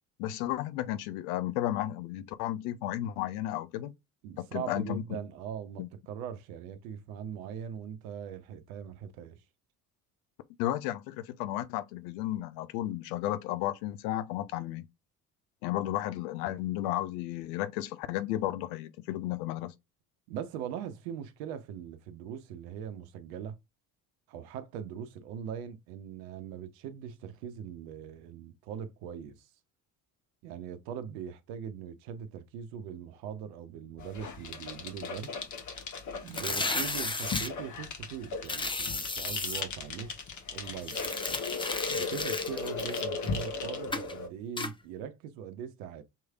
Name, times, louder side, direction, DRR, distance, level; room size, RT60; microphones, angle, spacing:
voice 1, 0.2-3.9 4.4-5.0 5.8-5.9 10.6-14.9 15.6-19.7, left 14 dB, 70° left, 0.7 m, -33 dB
voice 2, 4.2-9.4 20.3-23.6 24.3-29.5 30.4-35.4 36.2-41.1 41.9-46.0, right 8 dB, 70° right, 0.9 m, -41 dB
sound 1, 34.0-44.3, left 4 dB, 40° left, 1.2 m, -37 dB
sound 2, 36.3-37.5 38.4-39.6 40.8-43.5 43.9-44.1 44.6-44.7, left 3 dB, 10° left, 0.7 m, -34 dB
5.6 x 3.2 x 2.3 m
hypercardioid pair, 50°, 45 cm